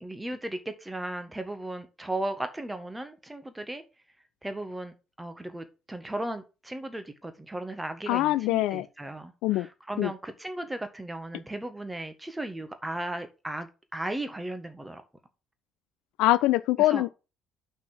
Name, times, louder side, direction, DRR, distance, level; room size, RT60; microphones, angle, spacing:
voice 1, 0.0-3.8 4.4-15.0 16.8-17.0, right 1 dB, 10° right, 1.5 m, -36 dB
voice 2, 8.1-8.9 9.4-9.7 10.0-10.1 16.2-17.1, left 16 dB, 60° left, 0.3 m, -23 dB
5.9 x 5.6 x 6.0 m
figure-of-eight pair, 50°, 0 cm